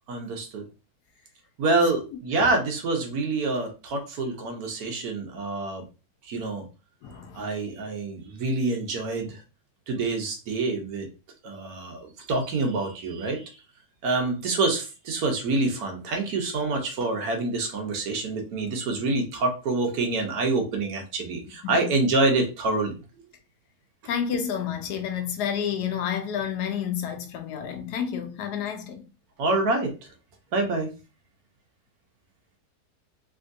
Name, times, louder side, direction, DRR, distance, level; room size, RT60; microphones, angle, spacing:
voice 1, 0.1-0.6 1.6-5.8 6.2-6.7 7.3-9.4 9.9-11.1 11.4-13.6 14.0-22.9 29.4-29.9 30.5-30.9, right 3 dB, 70° right, 1.2 m, -26 dB
voice 2, 7.0-7.5 21.6-21.9 24.0-29.0, left 8 dB, 80° left, 1.2 m, -30 dB
3.5 x 2.6 x 2.5 m
omnidirectional pair, 1.7 m